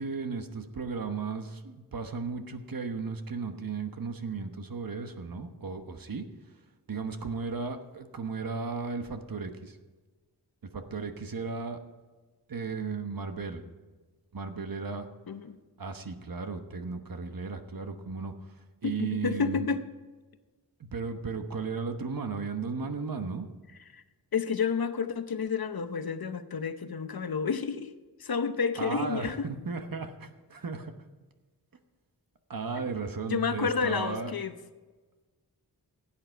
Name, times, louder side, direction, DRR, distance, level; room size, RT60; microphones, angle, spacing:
voice 1, 0.0-6.3 6.9-9.8 10.6-11.8 12.5-13.6 14.3-15.1 15.8-18.3 18.8-19.7 20.8-23.5 28.8-30.9 32.5-34.3, right 4 dB, 55° right, 7 dB, 1.1 m, -35 dB
voice 2, 15.3-15.6 18.8-19.8 23.9-24.0 24.3-27.9 28.2-29.5 32.8-32.9 33.3-34.5, left 5 dB, 60° left, 10 dB, 0.8 m, -30 dB
16.0 x 8.8 x 4.6 m, 1.3 s
wide cardioid pair, 85°, 41 cm